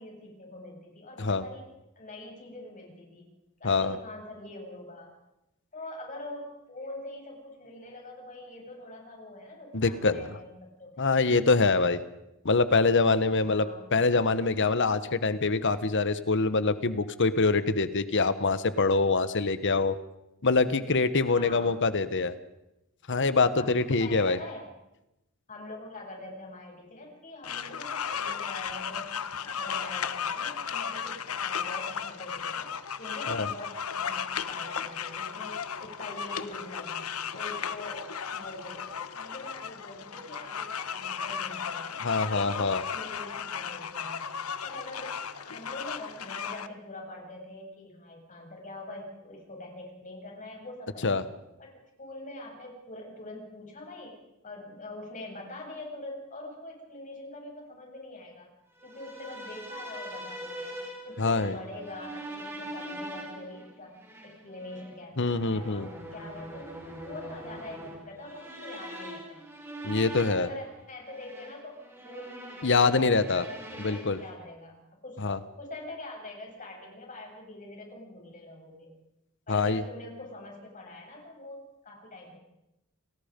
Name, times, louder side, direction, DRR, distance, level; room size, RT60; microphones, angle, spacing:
voice 1, 0.0-1.7 2.0-3.3 3.6-5.1 5.7-11.1 13.4-13.9 21.3-21.7 23.5-24.7 25.5-32.7 33.0-42.0 42.3-44.3 44.6-51.1 51.6-51.7 52.0-54.2 54.4-58.5 58.8-60.8 61.0-64.0 64.2-69.4 70.3-74.8 75.0-75.2 75.6-78.9 79.5-82.4, left 2 dB, 40° left, 0 dB, 7.8 m, -44 dB
voice 2, 3.6-4.0 9.7-10.4 11.0-12.0 12.4-13.7 13.9-20.0 20.4-22.3 23.1-24.4 33.3-33.5 42.0-42.8 51.0-51.2 61.2-61.6 65.2-65.9 69.8-70.5 72.6-73.5 73.8-74.2 75.2-75.4 79.5-79.8, left 3 dB, 60° left, 13 dB, 1.1 m, -24 dB
sound 1, 27.4-46.7, left 7 dB, 90° left, 1.1 m, -35 dB
sound 2, 58.8-74.3, right 1 dB, 10° right, 6.1 m, -43 dB
29.0 x 19.5 x 5.2 m, 0.89 s
head